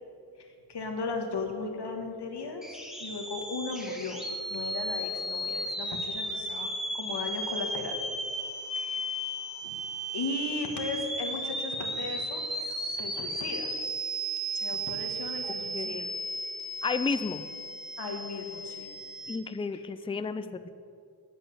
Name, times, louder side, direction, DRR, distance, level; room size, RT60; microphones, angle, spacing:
voice 1, 0.4-8.0 8.8-9.3 9.6-9.8 10.1-13.7 14.5-16.0 18.0-18.9, left 3 dB, 75° left, 3 dB, 1.6 m, -36 dB
sound 1, 2.6-19.4, right 1 dB, ahead, 1.5 m, -35 dB
voice 2, 15.4-16.1 16.8-17.5 19.3-20.7, left 4 dB, 15° left, 12 dB, 0.4 m, -32 dB
9.6 x 7.8 x 8.0 m, 2.4 s
wide cardioid pair, 120°, 41 cm